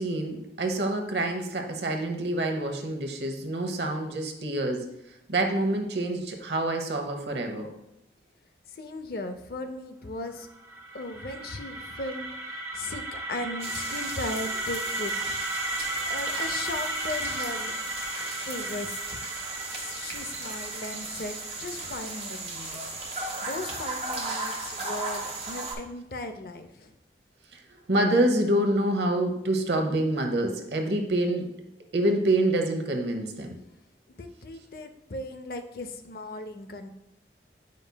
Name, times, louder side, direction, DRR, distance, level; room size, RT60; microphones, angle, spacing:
voice 1, 0.0-4.9 5.3-7.7 27.5-31.6 31.9-33.6, right 1 dB, 75° right, 4 dB, 0.9 m, -27 dB
voice 2, 8.7-10.5 10.9-15.4 16.1-17.7 18.4-19.2 19.8-23.0 23.4-26.9 34.2-36.9, left 2 dB, 55° left, 7 dB, 0.5 m, -37 dB
sound 1, 10.4-22.3, right 2 dB, 20° right, 1.0 m, -35 dB
sound 2, 13.6-25.7, right 3 dB, 35° right, 1.1 m, -36 dB
8.2 x 5.2 x 2.2 m, 0.86 s
head